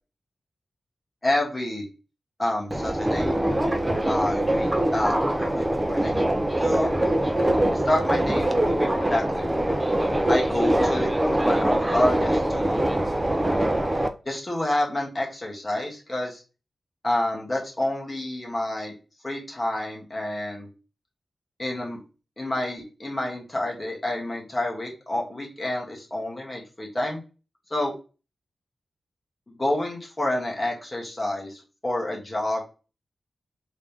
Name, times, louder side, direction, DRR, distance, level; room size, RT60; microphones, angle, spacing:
voice 1, 1.2-1.8 2.4-3.3 4.1-6.2 6.6-6.9 7.7-9.5 10.3-12.8 14.2-16.4 17.0-19.0 19.2-20.7 21.6-22.0 22.4-27.2 27.7-27.9 29.5-32.6, left 1 dB, 20° left, -2 dB, 1.6 m, -28 dB
Subway metro underground, 2.7-14.1, right 1 dB, 15° right, 0.5 m, -23 dB
3.7 x 3.2 x 3.5 m, 0.33 s
wide cardioid pair, 140°, 0 cm